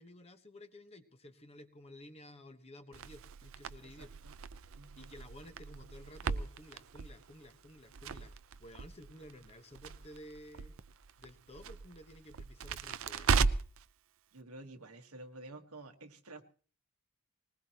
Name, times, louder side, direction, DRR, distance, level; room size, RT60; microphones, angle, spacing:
voice 1, 0.0-4.1 5.0-8.3 8.6-10.7 11.2-13.5, left 1 dB, 30° left, 9 dB, 1.2 m, -53 dB
Crackle, 2.9-13.8, right 5 dB, 65° right, 0.6 m, -37 dB
voice 2, 3.8-4.4 4.7-5.1 14.3-16.4, right 2 dB, 90° right, 5 dB, 1.6 m, -51 dB
20.5 x 19.5 x 3.0 m, 0.41 s
head